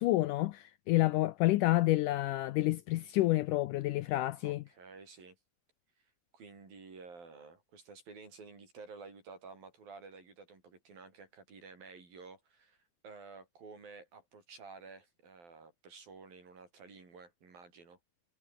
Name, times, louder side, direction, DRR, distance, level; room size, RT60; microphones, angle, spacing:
voice 1, 0.0-4.6, left 17 dB, 80° left, 1.9 m, -29 dB
voice 2, 4.4-5.4 6.0-12.8 13.0-18.0, right 4 dB, 70° right, 8.5 m, -52 dB
omnidirectional pair, 4.2 m